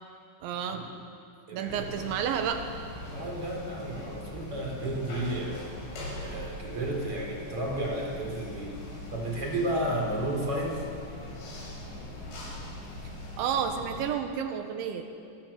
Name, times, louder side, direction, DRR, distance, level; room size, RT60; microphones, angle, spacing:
voice 1, 0.4-0.8 1.5-2.6 13.4-15.1, right 8 dB, 90° right, 6 dB, 3.9 m, -30 dB
voice 2, 1.5-2.0 3.1-5.7 6.2-8.8 9.1-10.9, right 1 dB, 30° right, 1 dB, 4.9 m, -32 dB
sound 1, 1.7-14.1, left 1 dB, 80° left, 9.8 m, -41 dB
25.5 x 23.5 x 7.6 m, 2.5 s
omnidirectional pair, 5.1 m